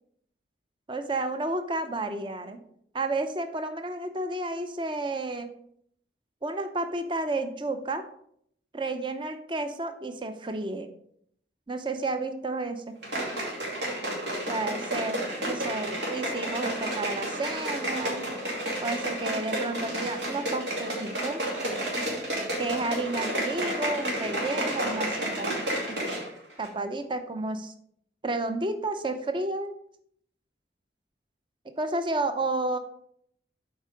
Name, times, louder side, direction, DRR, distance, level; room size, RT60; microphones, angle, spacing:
voice 1, 0.9-2.6 2.9-5.5 6.4-8.0 8.7-10.9 11.7-12.9 14.5-18.3 18.8-21.5 22.6-25.6 25.9-26.1 26.6-27.7 28.2-29.7 31.8-32.8, right 2 dB, 30° right, 8 dB, 0.7 m, -31 dB
sound 1, 13.0-26.3 26.6-26.7, right 1 dB, 85° right, 2.7 m, -31 dB
7.8 x 4.6 x 5.0 m, 0.68 s
head